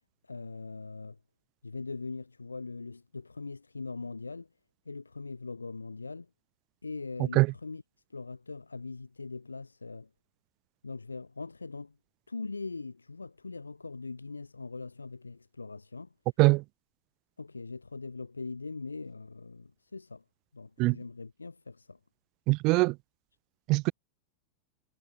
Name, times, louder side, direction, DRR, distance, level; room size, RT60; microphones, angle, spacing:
voice 1, 0.2-1.2 1.6-4.5 4.8-6.3 6.8-7.8 8.1-10.1 10.8-12.0 12.3-16.1 17.4-20.2 20.5-22.0, left 3 dB, 80° left, 6.1 m, -41 dB
voice 2, 22.5-22.9 23.7-23.9, right 24 dB, 40° right, 0.3 m, -22 dB
figure-of-eight pair, 90°, 0 cm